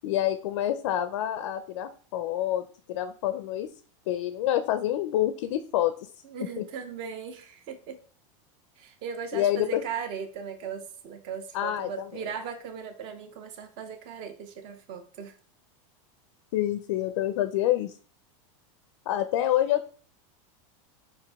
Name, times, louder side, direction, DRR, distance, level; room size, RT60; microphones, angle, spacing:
voice 1, 0.0-3.7 4.1-6.1 6.6-6.7 9.3-9.8 11.5-12.1 16.5-18.0 19.1-19.9, left 12 dB, 60° left, 0.4 m, -27 dB
voice 2, 6.2-8.0 8.8-15.4, right 6 dB, 30° right, 0.6 m, -38 dB
5.8 x 2.6 x 3.4 m
supercardioid pair, 170°, 17 cm